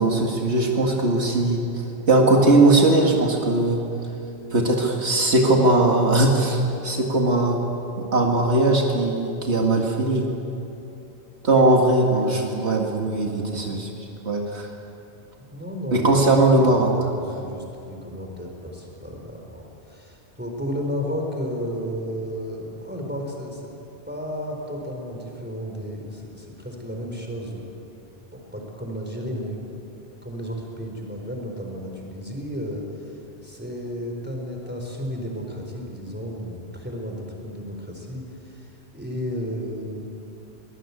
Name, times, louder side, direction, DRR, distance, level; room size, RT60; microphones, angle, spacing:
voice 1, 0.0-1.6 2.1-3.8 4.5-7.6 8.0-10.3 11.4-14.7 15.9-16.9, right 2 dB, 80° right, 0 dB, 2.3 m, -19 dB
voice 2, 15.5-16.2 16.5-23.7 24.1-27.6 28.3-29.6 30.2-40.0, equal, 10° right, 1 dB, 4.2 m, -33 dB
23.5 x 19.0 x 8.5 m, 2.9 s
omnidirectional pair, 1.1 m